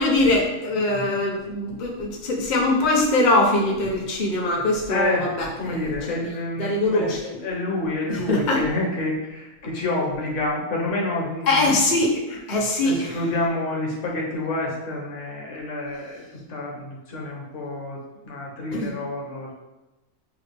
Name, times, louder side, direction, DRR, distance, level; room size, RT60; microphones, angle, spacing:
voice 1, 0.0-6.3 6.6-7.3 8.1-8.6 11.5-13.2 18.7-18.9, left 2 dB, 40° left, -3 dB, 0.8 m, -22 dB
voice 2, 4.9-5.3 5.6-7.1 7.4-11.7 12.8-16.2 16.5-19.5, left 2 dB, 60° left, -2 dB, 1.3 m, -28 dB
5.8 x 2.3 x 3.3 m, 1.0 s
omnidirectional pair, 1.4 m